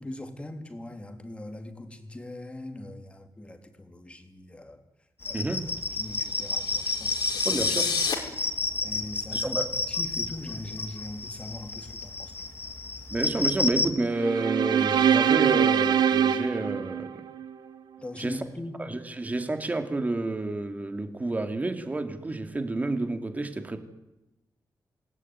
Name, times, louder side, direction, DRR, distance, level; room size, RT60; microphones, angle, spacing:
voice 1, 0.0-4.8 5.3-5.5 5.9-7.6 8.8-12.5 18.0-18.8, left 1 dB, 15° left, 6 dB, 3.4 m, -41 dB
sound 1, 5.2-13.9, left 3 dB, 30° left, 2.9 m, -31 dB
voice 2, 5.3-5.7 7.4-7.9 9.3-9.7 13.1-17.1 18.2-18.4 18.8-23.8, right 2 dB, 20° right, 7 dB, 2.7 m, -30 dB
sound 2, 6.2-8.1, left 6 dB, 75° left, 5.0 m, -31 dB
sound 3, 14.1-17.5, right 8 dB, 80° right, 1.1 m, -23 dB
27.5 x 19.0 x 9.6 m, 0.96 s
wide cardioid pair, 135°, 7 cm